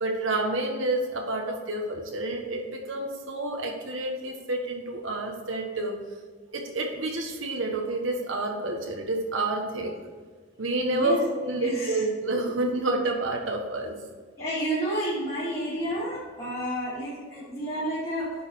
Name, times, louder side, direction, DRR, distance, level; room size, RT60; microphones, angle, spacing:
voice 1, 0.0-5.9 6.5-10.0 10.6-13.9, right 2 dB, 80° right, 2 dB, 1.4 m, -29 dB
voice 2, 10.9-11.2 11.5-12.0 14.4-18.3, right 1 dB, 30° left, -11 dB, 2.8 m, -30 dB
10.5 x 4.9 x 4.6 m, 1.5 s
head